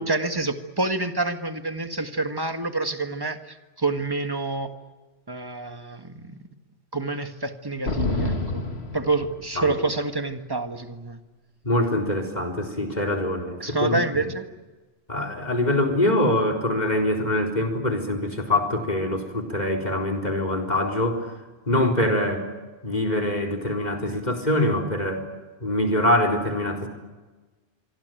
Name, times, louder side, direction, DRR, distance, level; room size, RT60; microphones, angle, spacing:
voice 1, 0.0-4.7 5.3-6.4 6.9-8.7 8.9-11.2 13.6-14.5, right 3 dB, 20° right, 7 dB, 1.7 m, -27 dB
sound 1, 7.9-9.8, left 2 dB, 75° left, 2.5 m, -28 dB
voice 2, 11.6-14.3 15.1-21.3 21.7-22.5 22.8-25.3 25.6-26.9, left 1 dB, 40° left, 6 dB, 4.2 m, -24 dB
26.5 x 24.0 x 9.2 m, 1.3 s
omnidirectional pair, 1.1 m